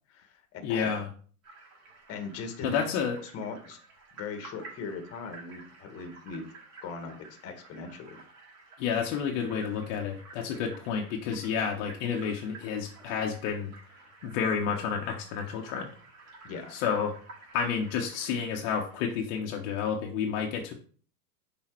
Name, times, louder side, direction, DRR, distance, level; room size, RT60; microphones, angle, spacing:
voice 1, 0.1-1.0 2.1-2.8 3.3-3.8 4.1-6.4 6.8-8.2 16.4-16.8, left 4 dB, 30° left, 5 dB, 1.3 m, -39 dB
voice 2, 0.6-1.1 2.6-3.2 8.8-13.7 14.2-15.9 16.7-17.1 17.5-20.7, left 6 dB, 50° left, 1 dB, 1.0 m, -30 dB
sound 1, 1.4-19.1, right 3 dB, 35° right, 2.5 m, -52 dB
6.0 x 4.0 x 4.5 m, 0.43 s
supercardioid pair, 135°, 46 cm